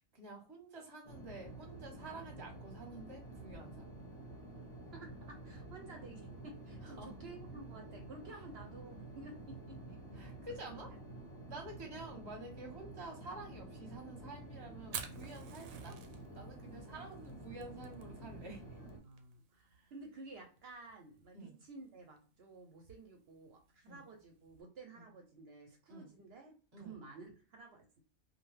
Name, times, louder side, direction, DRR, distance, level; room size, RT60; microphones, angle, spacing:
voice 1, 0.0-3.9 6.8-7.1 8.3-8.4 10.1-10.9 11.5-16.0 16.3-18.8 19.7-19.9 21.3-21.6 23.9-24.1 25.0-25.1 25.9-26.1 26.7-27.0, right 2 dB, 25° right, 1 dB, 0.7 m, -50 dB
sound 1, 1.0-19.0, right 2 dB, 35° left, 0.7 m, -50 dB
voice 2, 4.9-10.5 10.9-11.4 11.9-12.0 19.0-28.0, right 3 dB, 60° right, 3 dB, 0.7 m, -53 dB
Fire, 14.8-24.6, right 7 dB, 85° right, 1.0 m, -52 dB
2.5 x 2.2 x 3.1 m, 0.38 s
omnidirectional pair, 1.4 m